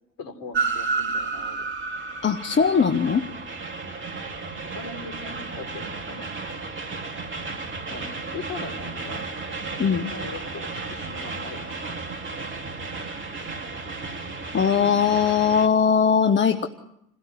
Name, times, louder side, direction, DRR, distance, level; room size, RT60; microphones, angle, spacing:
voice 1, 0.2-1.7 4.6-6.3 7.9-9.3 9.8-12.0, left 4 dB, 55° left, 7 dB, 4.1 m, -40 dB
Train, 0.5-15.7, right 4 dB, 30° right, 3.3 m, -33 dB
voice 2, 2.2-3.2 9.8-10.1 14.5-16.7, left 6 dB, 25° left, 7 dB, 1.6 m, -20 dB
28.0 x 17.5 x 9.4 m, 0.79 s
figure-of-eight pair, 65°, 41 cm